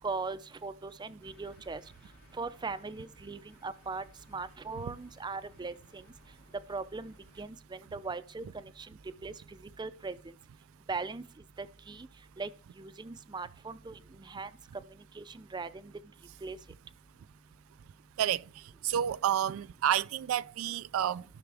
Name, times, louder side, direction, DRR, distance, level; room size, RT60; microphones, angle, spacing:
voice 1, 0.0-1.8 2.4-6.0 6.7-10.3 10.9-11.2 11.6-12.1 12.4-12.5 12.8-14.5 15.1-15.9 16.4-16.6, right 4 dB, 20° right, 0.5 m, -40 dB
sound 1, 1.2-7.5, left 1 dB, 85° left, 2.8 m, -61 dB
voice 2, 18.8-21.2, right 10 dB, 85° right, 0.3 m, -29 dB
14.5 x 6.0 x 3.4 m
head